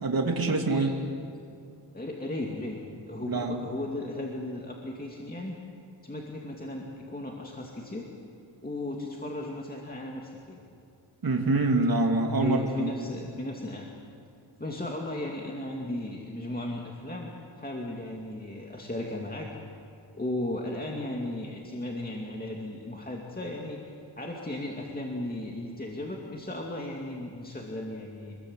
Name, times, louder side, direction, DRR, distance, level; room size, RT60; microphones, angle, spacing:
voice 1, 0.0-1.0 3.3-3.6 11.2-12.9, right 2 dB, 50° right, 2 dB, 2.7 m, -25 dB
voice 2, 1.9-2.8 3.1-5.6 6.0-8.1 8.6-10.6 12.4-13.9 14.6-17.3 17.6-19.5 20.1-23.8 24.2-28.4, left 1 dB, 20° left, -1 dB, 2.4 m, -35 dB
27.5 x 21.5 x 8.1 m, 2.5 s
wide cardioid pair, 95°, 46 cm